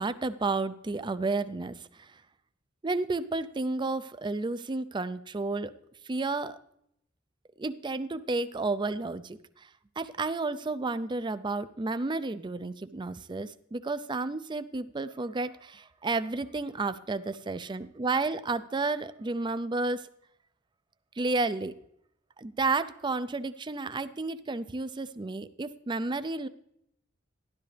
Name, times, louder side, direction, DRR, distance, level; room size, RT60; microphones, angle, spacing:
voice 1, 0.0-2.2 2.8-5.7 6.0-6.6 7.6-9.7 10.0-20.1 21.2-21.8 22.4-26.5, right 3 dB, 25° right, 13 dB, 0.5 m, -31 dB
12.5 x 11.5 x 3.3 m, 0.75 s
head